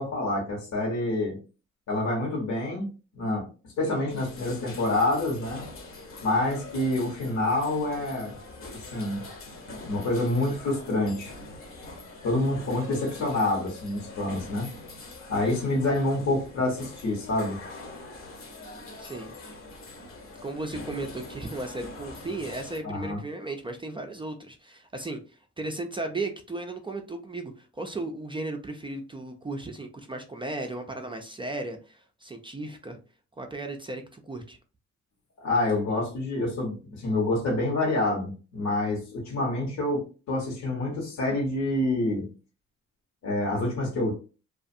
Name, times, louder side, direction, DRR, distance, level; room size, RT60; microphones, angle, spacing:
voice 1, 0.0-1.4 1.9-2.9 3.1-3.5 3.8-5.6 6.2-8.4 8.7-9.2 9.7-11.3 12.2-14.7 15.3-17.6 22.8-23.2 35.4-42.3 43.2-44.1, left 2 dB, 65° left, -3 dB, 1.1 m, -27 dB
sound 1, 4.1-22.8, left 2 dB, 45° left, 0.9 m, -43 dB
voice 2, 19.0-19.3 20.4-33.0 33.4-34.6, right 2 dB, 15° right, 4 dB, 0.4 m, -35 dB
2.5 x 2.4 x 2.5 m, 0.34 s
cardioid pair, 90°, 30 cm